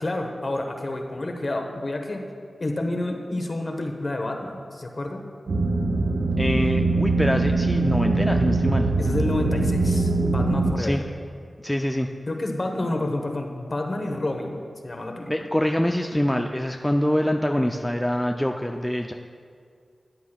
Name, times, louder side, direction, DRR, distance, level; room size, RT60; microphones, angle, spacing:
voice 1, 0.0-2.3 2.6-5.2 9.0-11.0 12.3-15.5, left 2 dB, 45° left, 3 dB, 1.0 m, -29 dB
sound 1, 5.5-10.7, right 3 dB, 80° right, 0.8 m, -22 dB
voice 2, 6.4-8.9 10.8-11.0 11.6-12.1 15.3-19.1, left 1 dB, 10° left, 4 dB, 0.3 m, -25 dB
13.0 x 9.4 x 2.3 m, 2.2 s
wide cardioid pair, 90°, 0 cm